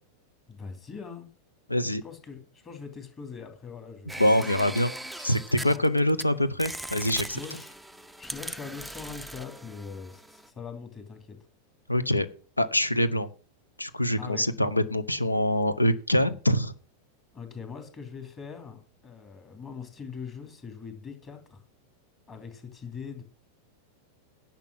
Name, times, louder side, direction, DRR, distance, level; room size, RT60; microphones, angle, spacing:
voice 1, 0.5-1.3 2.0-4.3 5.6-5.9 7.3-7.7 8.0-11.4 14.2-14.5 17.3-21.6 22.3-23.2, left 6 dB, 25° left, 5 dB, 3.0 m, -42 dB
voice 2, 1.7-2.0 4.2-4.9 5.2-7.4 11.9-12.3 12.6-13.3 13.8-16.7, left 1 dB, 85° left, 15 dB, 0.8 m, -24 dB
sound 1, 4.1-6.2 6.6-10.5, right 1 dB, ahead, 0.5 m, -40 dB
10.5 x 5.9 x 7.7 m, 0.40 s
figure-of-eight pair, 90°, 0 cm